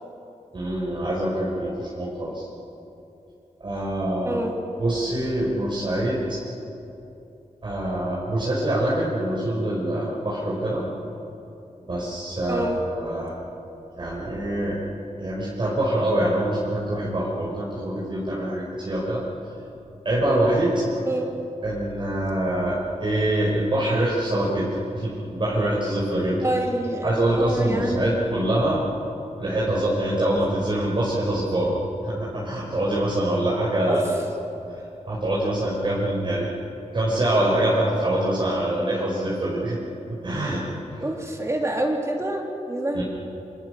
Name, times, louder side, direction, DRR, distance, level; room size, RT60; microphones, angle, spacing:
voice 1, 0.5-2.5 3.6-4.4 4.8-6.4 7.6-10.8 11.8-13.4 13.9-14.8 15.2-19.2 20.0-20.8 21.6-26.5 27.0-28.8 29.4-31.7 32.0-34.2 35.1-36.5 36.9-39.8 40.1-41.0 42.9-43.0, right 1 dB, 40° right, -7 dB, 5.5 m, -24 dB
voice 2, 4.2-4.5 12.5-12.8 21.1-21.3 26.4-28.2 41.0-43.0, right 1 dB, 25° right, 0 dB, 3.3 m, -27 dB
29.0 x 27.5 x 6.6 m, 2.9 s
wide cardioid pair, 150°, 12 cm